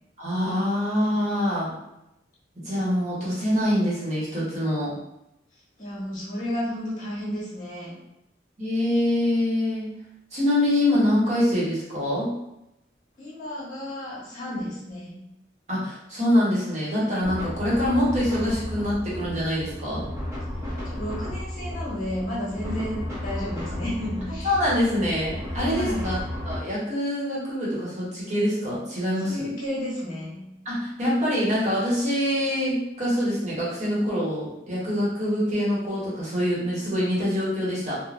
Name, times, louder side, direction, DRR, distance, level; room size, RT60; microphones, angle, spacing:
voice 1, 0.2-1.7 2.6-5.0 8.6-9.9 10.3-12.4 15.7-20.0 24.4-26.2 26.4-29.5 30.6-38.0, left 1 dB, 40° right, -8 dB, 1.0 m, -25 dB
voice 2, 5.8-8.0 13.2-15.2 20.8-24.5 25.5-26.1 29.2-30.4, left 1 dB, 50° left, -7 dB, 1.2 m, -32 dB
sound 1, 17.2-26.6, left 1 dB, 15° right, 0.9 m, -33 dB
3.3 x 2.2 x 2.4 m, 0.87 s
head